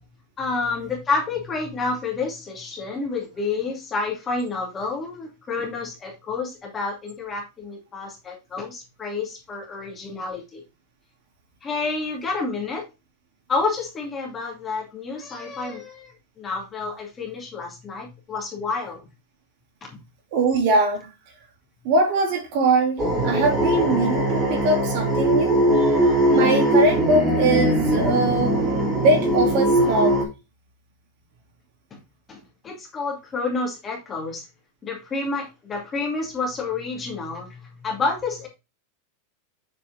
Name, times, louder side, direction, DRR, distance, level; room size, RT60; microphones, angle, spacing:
voice 1, 0.4-10.6 11.6-12.8 13.5-19.0 19.8-19.9 31.9-32.0 32.3-34.5 34.8-38.5, left 3 dB, 15° left, 2.4 m, -29 dB
voice 2, 20.3-21.1 21.8-25.9 26.3-28.5 28.9-30.2, right 2 dB, 45° right, 3.0 m, -22 dB
sound 1, 23.0-30.2, right 1 dB, 15° right, 2.9 m, -20 dB
7.3 x 4.9 x 3.8 m
supercardioid pair, 170°, 0 cm